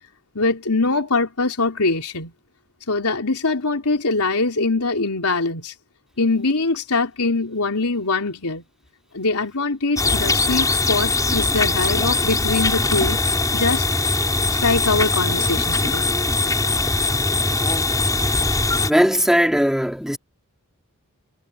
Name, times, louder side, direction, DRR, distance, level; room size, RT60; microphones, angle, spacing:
voice 1, 0.4-2.3 2.9-5.7 6.2-8.6 9.1-13.2 13.5-13.9 14.5-16.1, left 3 dB, 80° left, 3.7 m, -22 dB
sound 1, 10.0-18.9, left 3 dB, 15° left, 4.6 m, -21 dB
voice 2, 18.8-20.2, equal, ahead, 3.4 m, -18 dB
head